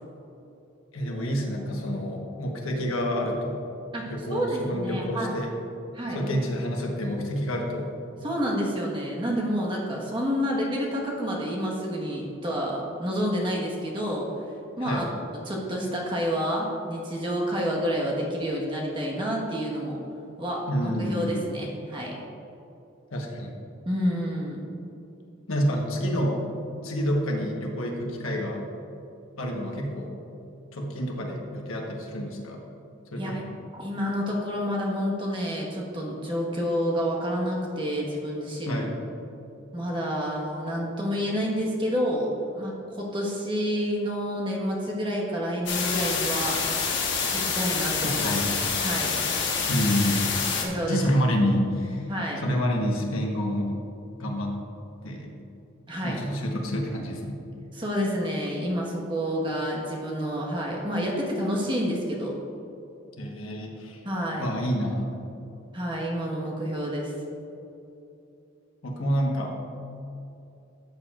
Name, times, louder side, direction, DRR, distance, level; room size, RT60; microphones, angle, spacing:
voice 1, 0.9-3.6 4.1-5.5 6.1-7.9 14.8-15.1 20.7-21.4 23.1-23.6 25.5-26.4 26.8-28.6 29.4-30.1 30.7-32.6 33.1-33.5 38.7-38.9 48.2-48.6 49.7-50.4 50.9-52.1 52.4-53.8 54.2-54.6 55.0-55.3 56.0-57.4 63.2-64.0 64.4-65.2 68.8-69.6, equal, 80° left, 0 dB, 1.3 m, -28 dB
voice 2, 3.9-5.3 5.9-6.4 8.2-14.3 14.8-15.1 15.4-20.0 20.4-22.1 23.8-24.6 33.2-33.4 33.7-38.8 39.7-46.6 47.3-48.3 48.8-49.2 50.6-51.0 52.1-52.4 55.9-56.2 57.7-62.3 64.0-64.4 65.7-67.1, equal, 25° right, -3 dB, 1.4 m, -29 dB
sound 1, 45.7-50.6, left 5 dB, 60° left, 1.3 m, -27 dB
13.5 x 7.2 x 2.5 m, 2.8 s
head